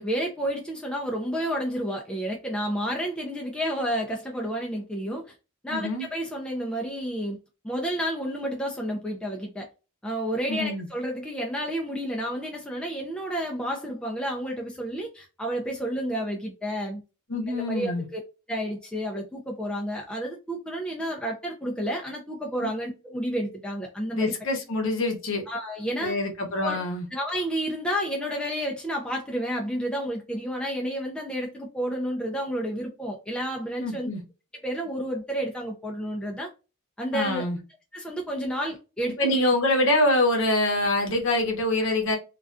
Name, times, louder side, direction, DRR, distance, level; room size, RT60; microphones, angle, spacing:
voice 1, 0.0-5.2 5.6-7.4 7.6-9.7 10.0-17.0 17.5-18.2 18.5-24.3 25.5-26.2 26.6-26.8 27.1-34.1 34.6-36.5 37.0-37.4 37.9-39.5, equal, 5° left, 0.3 m, -30 dB
voice 2, 5.7-6.1 10.5-10.9 17.3-18.0 22.6-22.7 24.1-25.4 26.0-27.1 33.8-34.2 37.1-37.6 39.2-42.2, left 1 dB, 55° left, 0.7 m, -25 dB
2.3 x 2.2 x 2.4 m
head